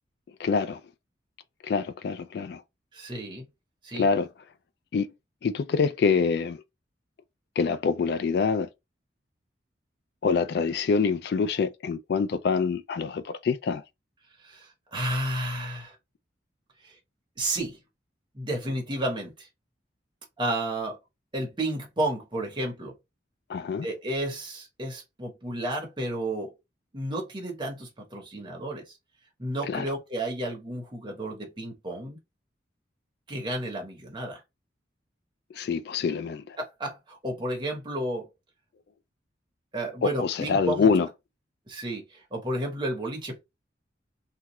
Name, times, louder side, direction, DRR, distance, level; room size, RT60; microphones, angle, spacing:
voice 1, 0.4-0.8 1.6-2.6 3.9-4.3 4.9-5.1 5.4-6.6 7.6-8.7 10.2-13.8 23.5-23.9 29.7-29.8 35.5-36.6 40.0-41.1, left 5 dB, 60° left, 0.3 m, -25 dB
voice 2, 2.9-3.5 3.8-4.1 14.4-16.0 16.8-17.0 17.4-17.8 18.3-19.5 20.4-21.0 21.3-23.0 23.8-26.5 26.9-29.0 29.4-32.2 33.3-34.4 36.8-38.3 39.7-40.9 41.7-43.4, right 1 dB, 25° right, 0.9 m, -32 dB
2.8 x 2.3 x 3.0 m
head